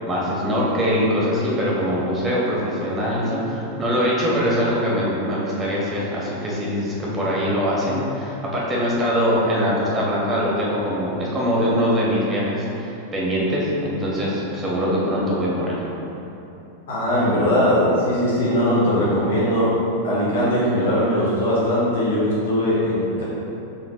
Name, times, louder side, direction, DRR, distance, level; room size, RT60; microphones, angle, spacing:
voice 1, 0.1-15.9, equal, 15° right, -5 dB, 1.1 m, -22 dB
voice 2, 16.9-19.7 20.0-23.2, equal, 60° left, -8 dB, 1.1 m, -20 dB
4.4 x 3.5 x 2.8 m, 3.0 s
figure-of-eight pair, 90°, 0 cm